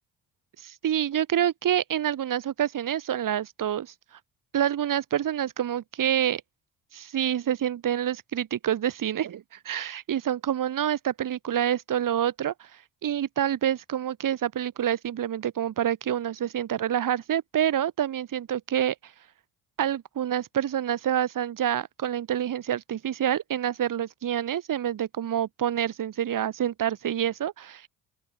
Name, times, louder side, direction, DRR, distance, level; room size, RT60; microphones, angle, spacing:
voice 1, 0.6-3.9 4.5-6.4 6.9-12.7 13.0-18.9 19.8-27.9, right 10 dB, 45° right, 1.1 m, -27 dB
open air
supercardioid pair, 55°, 44 cm